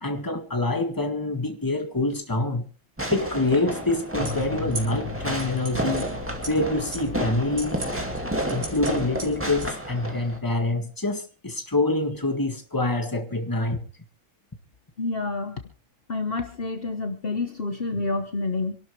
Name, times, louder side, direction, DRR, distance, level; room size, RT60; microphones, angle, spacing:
voice 1, 0.0-2.6 3.1-6.1 6.5-7.8 8.5-13.8, left 2 dB, 15° left, 1.7 m, -26 dB
Fireworks, 3.0-10.4, right 1 dB, 10° right, 2.1 m, -31 dB
sound 1, 4.2-9.7, left 2 dB, 85° right, 3.2 m, -36 dB
voice 2, 15.0-15.6 16.1-18.8, left 3 dB, 45° left, 1.3 m, -28 dB
26.5 x 12.0 x 3.2 m
omnidirectional pair, 1.4 m